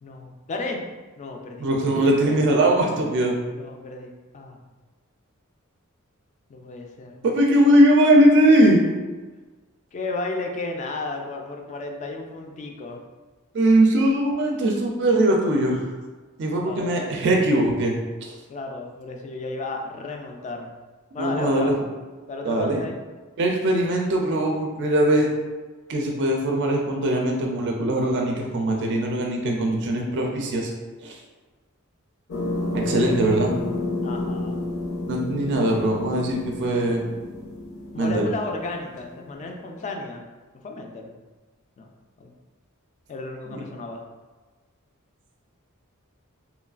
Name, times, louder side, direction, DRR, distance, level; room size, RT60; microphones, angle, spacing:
voice 1, 0.0-0.8 1.2-1.7 3.5-4.6 6.5-7.1 9.9-13.0 16.6-17.1 18.5-20.7 21.1-21.7 22.3-22.9 33.1-33.4 34.0-34.6 37.9-40.2 40.6-41.1 41.8-41.9 42.2-42.3 43.1-44.0, left 3 dB, 35° left, 2 dB, 0.3 m, -33 dB
voice 2, 1.6-3.4 7.2-8.8 13.5-15.8 16.4-17.9 18.2-18.4 21.2-21.7 22.4-22.8 23.4-25.3 25.9-30.7 31.0-31.2 32.7-33.5 35.1-37.0 38.0-38.3, right 1 dB, 55° right, 1 dB, 0.4 m, -20 dB
sound 1, 32.3-39.5, left 2 dB, 70° left, 0.6 m, -30 dB
3.0 x 2.3 x 2.4 m, 1.3 s
head